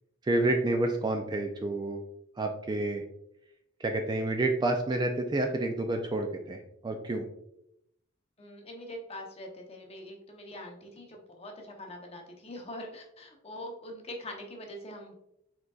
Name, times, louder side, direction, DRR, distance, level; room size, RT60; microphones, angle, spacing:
voice 1, 0.3-2.0 2.4-3.0 3.8-7.2, right 2 dB, 20° right, 4 dB, 0.3 m, -29 dB
voice 2, 8.4-15.1, left 1 dB, 30° left, 2 dB, 0.8 m, -43 dB
4.9 x 3.8 x 2.3 m, 0.79 s
head